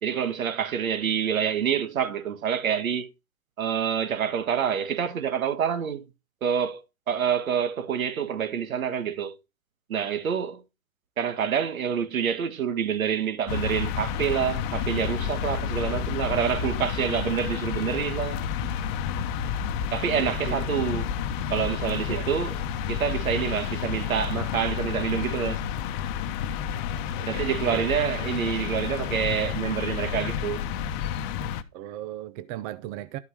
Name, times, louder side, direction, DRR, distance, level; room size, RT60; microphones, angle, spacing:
voice 1, 0.0-3.1 3.6-6.1 6.4-6.8 7.1-9.4 9.9-10.6 11.2-18.4 19.9-21.1 21.5-22.6 22.9-25.6 27.3-30.6, right 8 dB, 80° right, 1.9 m, -27 dB
sound 1, 13.5-31.6, left 8 dB, 35° left, 1.0 m, -30 dB
voice 2, 20.2-20.7 22.1-22.3 27.2-27.9 31.7-33.2, right 12 dB, 30° right, 0.6 m, -37 dB
12.5 x 5.7 x 4.8 m
hypercardioid pair, 135°, 41 cm